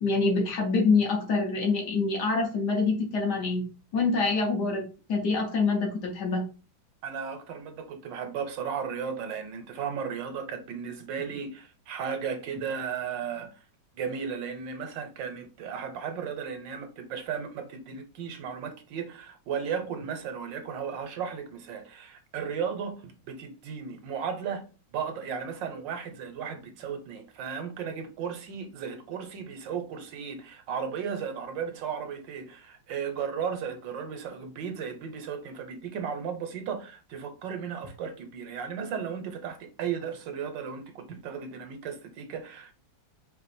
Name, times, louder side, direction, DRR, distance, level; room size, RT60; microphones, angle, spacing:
voice 1, 0.0-3.6 3.9-4.8 5.1-6.4, left 4 dB, 60° left, 1.6 m, -25 dB
voice 2, 7.0-13.5 14.0-24.6 24.9-42.8, right 7 dB, 75° right, 1.4 m, -35 dB
4.8 x 2.4 x 4.2 m
omnidirectional pair, 2.1 m